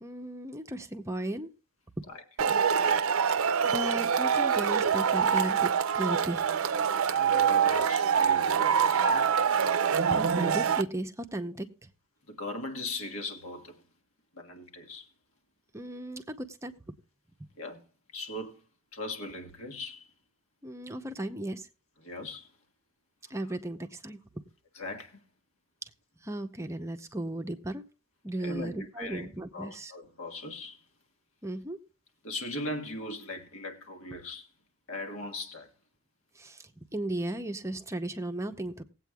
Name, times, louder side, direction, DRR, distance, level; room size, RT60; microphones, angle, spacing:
voice 1, 0.0-1.5 2.0-2.1 3.6-6.4 10.1-11.7 15.7-16.9 20.6-21.7 23.3-24.4 26.2-27.8 28.2-29.9 31.4-31.8 36.4-38.8, right 1 dB, 15° right, 0.7 m, -35 dB
voice 2, 2.1-2.6 7.0-9.5 12.3-13.8 14.3-15.1 17.6-17.8 18.1-18.6 18.9-20.1 22.0-22.5 24.7-25.2 28.4-30.8 32.2-34.5 34.9-35.7, left 2 dB, 70° left, 1.7 m, -39 dB
Male speech man speaking / Shout / Clapping, 2.4-10.8, right 7 dB, 70° right, 0.5 m, -25 dB
19.5 x 8.3 x 2.3 m
head